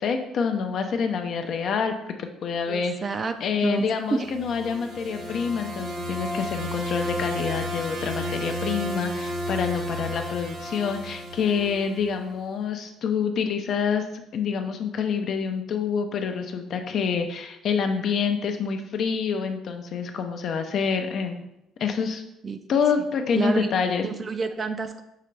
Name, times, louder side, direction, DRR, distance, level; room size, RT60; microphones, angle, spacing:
voice 1, 0.0-2.9 3.4-21.4 21.8-22.2 22.7-24.0, left 6 dB, 60° left, 6 dB, 0.5 m, -27 dB
voice 2, 2.7-4.3 22.4-22.6 23.3-23.7 24.0-25.0, right 4 dB, 35° right, 9 dB, 0.4 m, -29 dB
sound 1, 4.0-12.2, equal, 70° right, 0.8 m, -32 dB
5.6 x 2.5 x 3.2 m, 0.85 s
supercardioid pair, 70°, 0 cm